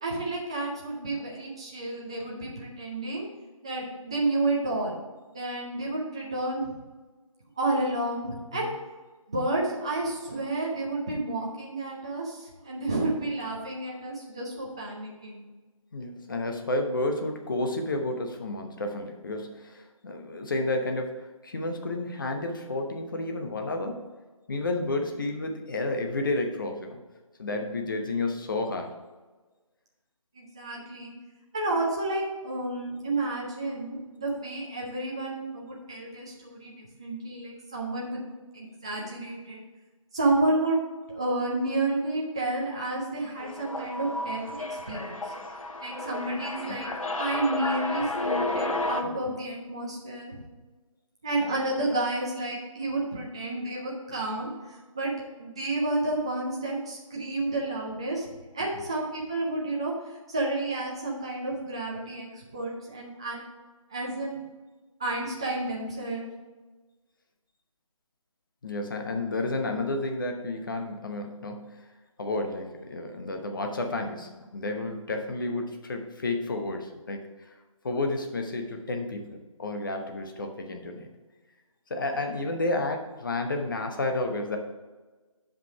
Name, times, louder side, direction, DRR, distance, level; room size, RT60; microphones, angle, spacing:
voice 1, 0.0-3.2 3.6-5.0 5.3-6.7 7.6-8.7 9.3-15.4 30.3-31.1 31.5-38.2 38.5-39.6 40.1-40.8 41.1-45.3 45.8-50.4 51.2-55.1 55.4-58.3 58.5-59.9 60.3-63.4 63.9-64.4 65.0-66.3, right 2 dB, 10° right, -3 dB, 0.4 m, -30 dB
voice 2, 15.9-24.0 24.5-27.0 27.4-28.9 46.7-46.8 68.6-71.8 72.2-77.3 77.8-81.1 81.9-84.6, left 2 dB, 35° left, 4 dB, 1.0 m, -31 dB
sound 1, 43.4-49.0, left 2 dB, 75° left, 1.1 m, -32 dB
8.4 x 5.2 x 4.7 m, 1.3 s
figure-of-eight pair, 160°, 18 cm